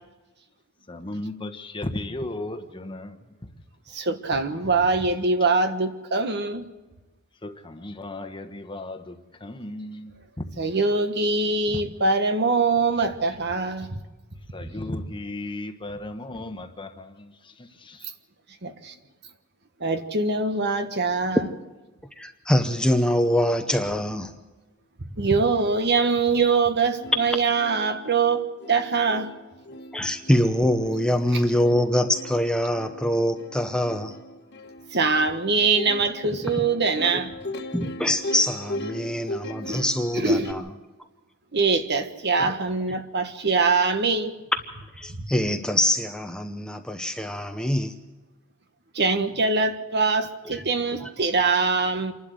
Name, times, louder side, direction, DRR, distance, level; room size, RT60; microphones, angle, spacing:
voice 1, 0.9-3.5 7.4-10.6 11.7-11.8 13.0-13.4 14.5-18.1, left 1 dB, 25° left, 1.2 m, -36 dB
voice 2, 3.9-6.7 10.6-13.9 18.6-18.9 19.8-21.4 25.2-29.3 34.9-37.3 39.6-39.8 40.1-40.5 41.5-44.3 45.1-45.2 48.9-52.1, right 4 dB, 50° right, 1.4 m, -23 dB
voice 3, 22.2-24.4 29.9-34.2 37.7-40.7 42.4-42.5 45.0-48.0 50.4-50.6 51.0-51.1, left 1 dB, 5° left, 0.9 m, -24 dB
Plucked string instrument, 26.6-26.7 27.0-40.5, left 1 dB, 50° left, 1.6 m, -38 dB
27.5 x 12.0 x 7.9 m
head